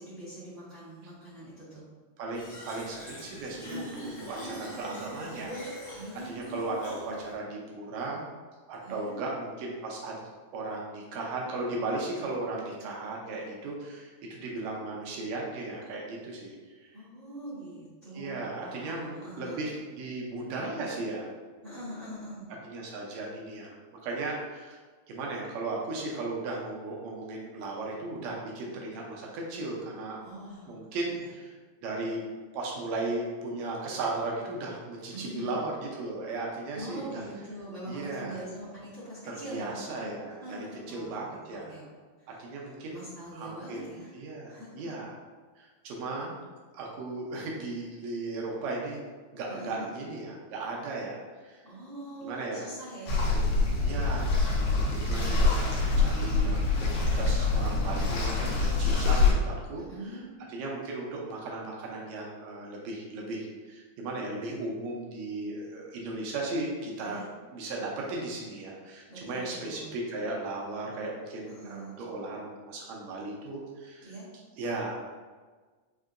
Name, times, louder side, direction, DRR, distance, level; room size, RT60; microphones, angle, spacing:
voice 1, 0.0-1.8 6.0-7.2 8.8-9.3 16.9-19.6 21.6-22.5 30.2-31.3 35.1-35.5 36.7-41.1 41.5-41.9 42.2-44.1 44.5-44.8 49.5-49.9 51.6-54.0 59.7-60.3 67.0-67.3 69.1-69.9 71.5-72.0 74.0-74.3, right 1 dB, 60° right, -14 dB, 0.7 m, -43 dB
voice 2, 2.2-8.2 8.7-10.2 10.5-16.9 18.1-21.3 22.6-23.8 24.0-24.8 25.1-30.2 30.7-31.5 31.8-32.2 32.5-37.2 37.9-38.4 39.5-41.7 42.4-43.0 43.3-43.9 44.1-45.2 45.6-46.4 46.7-49.0 49.3-51.6 52.2-52.7 53.2-53.4 53.8-54.4 54.8-60.1 60.5-67.3 67.5-74.1 74.6-75.1, right 2 dB, 75° right, -2 dB, 1.9 m, -36 dB
Fill (with liquid), 2.3-7.3, equal, 65° left, 0.6 m, -42 dB
sound 1, 53.1-59.3, left 3 dB, 85° left, 2.3 m, -25 dB
5.4 x 2.7 x 2.5 m, 1.4 s
omnidirectional pair, 3.5 m